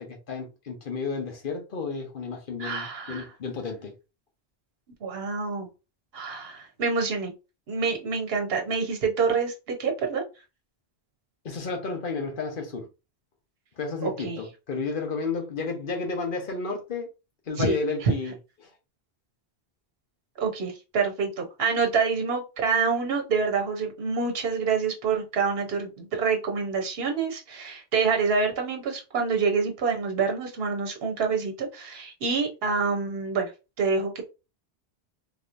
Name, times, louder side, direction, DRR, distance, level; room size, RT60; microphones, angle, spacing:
voice 1, 0.0-3.9 11.4-12.9 13.8-17.1 17.5-18.4 18.6-18.7, left 4 dB, 55° left, 1.1 m, -32 dB
voice 2, 2.6-3.3 5.0-5.7 6.1-7.3 7.7-10.2 14.0-14.4 17.6-18.1 20.4-33.5 33.8-34.2, right 5 dB, 65° right, 1.1 m, -27 dB
3.7 x 3.0 x 2.5 m
omnidirectional pair, 1.1 m